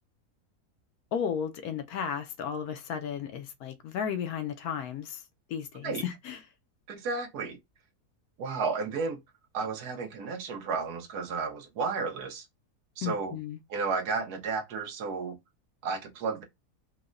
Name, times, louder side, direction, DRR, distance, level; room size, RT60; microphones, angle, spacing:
voice 1, 1.1-5.2 5.5-6.4 13.0-13.6, left 8 dB, 75° left, 1.0 m, -34 dB
voice 2, 6.9-7.6 8.4-9.2 9.5-12.4 13.0-13.4 13.7-15.4 15.8-16.4, right 4 dB, 75° right, 1.3 m, -32 dB
4.7 x 2.1 x 2.4 m
omnidirectional pair, 1.7 m